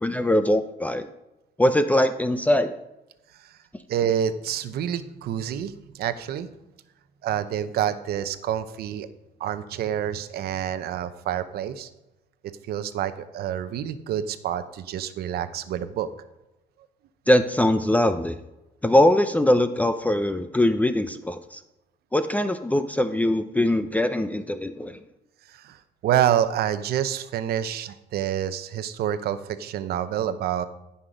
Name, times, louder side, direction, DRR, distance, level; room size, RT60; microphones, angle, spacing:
voice 1, 0.0-1.0 1.6-2.8 17.3-18.4 18.8-21.6 22.1-25.0, left 1 dB, 10° left, 9 dB, 0.6 m, -22 dB
voice 2, 3.9-6.5 7.2-9.1 9.4-11.9 12.7-16.1 25.5-25.8 26.0-30.6, right 10 dB, 70° right, 12 dB, 0.9 m, -27 dB
15.5 x 5.8 x 5.1 m, 0.96 s
cardioid pair, 110°, 17 cm